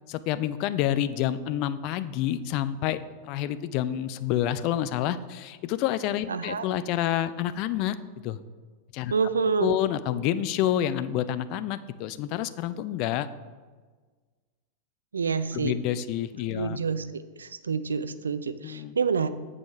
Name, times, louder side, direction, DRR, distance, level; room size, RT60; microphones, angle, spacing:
voice 1, 0.1-8.4 8.9-9.1 9.6-13.3 15.5-16.8 18.6-19.0, left 11 dB, 40° left, 13 dB, 0.4 m, -28 dB
voice 2, 6.3-6.7 9.1-9.8 15.1-15.7 16.5-19.3, right 5 dB, 70° right, 13 dB, 0.4 m, -28 dB
8.2 x 4.9 x 5.7 m, 1.4 s
figure-of-eight pair, 90°, 0 cm